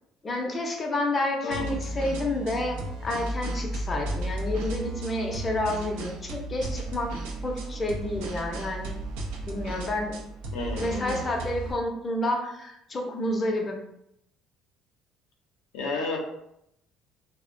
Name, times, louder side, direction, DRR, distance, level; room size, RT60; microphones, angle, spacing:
voice 1, 0.2-7.1 7.4-8.9 9.5-10.2 10.8-13.8, left 1 dB, 30° left, 1 dB, 0.5 m, -29 dB
voice 2, 1.4-1.8 10.5-11.2 15.7-16.2, left 3 dB, 80° left, 0 dB, 0.5 m, -32 dB
sound 1, 1.5-11.7, right 1 dB, 85° right, 0.5 m, -34 dB
2.3 x 2.1 x 2.5 m, 0.78 s
supercardioid pair, 85°, 0 cm